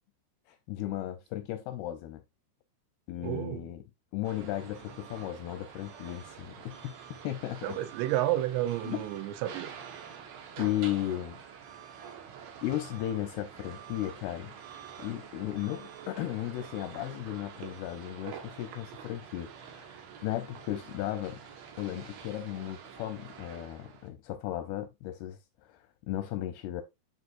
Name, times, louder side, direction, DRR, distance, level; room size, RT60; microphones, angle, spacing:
voice 1, 0.5-2.2 3.1-3.8 4.1-6.9 7.2-7.8 8.8-9.0 10.6-11.4 12.6-14.5 15.0-20.0 20.2-21.4 21.8-25.4 25.7-26.8, left 13 dB, 80° left, 2.3 m, -35 dB
voice 2, 3.2-3.6 7.6-9.7, right 13 dB, 85° right, 3.1 m, -31 dB
sound 1, 4.2-24.1, right 8 dB, 65° right, 2.9 m, -47 dB
10.0 x 4.8 x 2.5 m
omnidirectional pair, 5.1 m